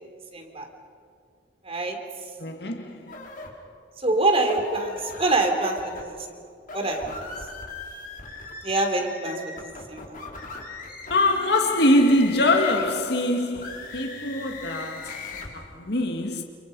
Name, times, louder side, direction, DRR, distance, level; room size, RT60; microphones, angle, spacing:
voice 1, 0.3-0.7 1.6-2.0 4.0-6.4 6.7-7.3 8.6-10.2, right 2 dB, 35° right, 3.9 m, -25 dB
voice 2, 2.4-3.3 11.1-16.4, left 1 dB, 65° left, 2.0 m, -23 dB
sound 1, 3.1-3.5 4.5-6.0 6.6-13.0 13.5-15.5, left 4 dB, 50° left, 4.4 m, -39 dB
29.5 x 28.5 x 5.5 m
head